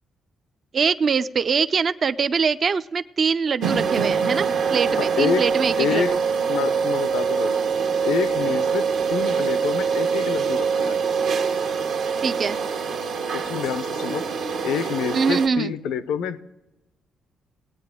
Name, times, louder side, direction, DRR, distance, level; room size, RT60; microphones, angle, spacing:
voice 1, 0.7-6.0 12.2-12.6 15.1-15.7, right 5 dB, 45° right, 12 dB, 0.4 m, -23 dB
sound 1, 3.6-15.5, right 6 dB, 75° right, 1.2 m, -24 dB
voice 2, 5.0-5.5 5.8-6.2 6.5-7.6 8.0-11.0 13.3-14.2 14.6-16.4, left 7 dB, 90° left, 13 dB, 0.5 m, -27 dB
18.0 x 8.9 x 3.6 m, 1.0 s
cardioid pair, 90°, 0 cm